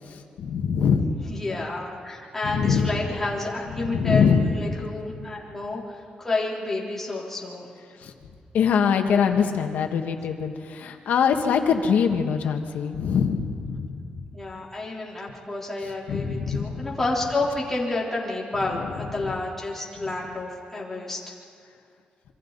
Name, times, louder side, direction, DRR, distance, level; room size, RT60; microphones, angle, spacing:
voice 1, 0.1-1.1 2.4-2.9 3.8-4.6 5.1-5.2 8.0-8.1 8.5-14.2 16.1-16.9 19.2-19.3, left 6 dB, 90° left, 4 dB, 1.7 m, -23 dB
voice 2, 1.3-7.7 14.3-21.2, left 2 dB, 10° left, -5 dB, 3.7 m, -30 dB
27.5 x 24.5 x 4.1 m, 2.4 s
wide cardioid pair, 140°, 3 cm